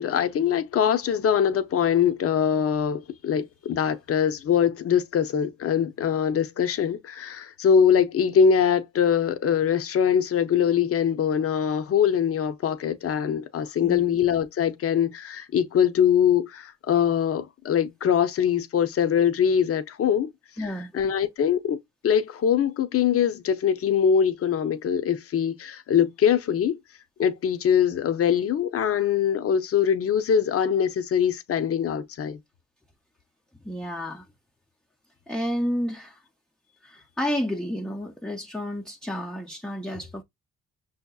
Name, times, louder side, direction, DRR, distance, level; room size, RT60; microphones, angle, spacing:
voice 1, 0.0-20.3 20.6-21.8 22.0-26.8 27.2-32.4, left 8 dB, 50° left, 0.7 m, -23 dB
voice 2, 13.8-14.2 20.6-20.9 33.6-34.3 35.3-36.2 36.8-40.2, equal, 5° left, 0.5 m, -31 dB
5.6 x 2.7 x 2.3 m
cardioid pair, 90°, 30 cm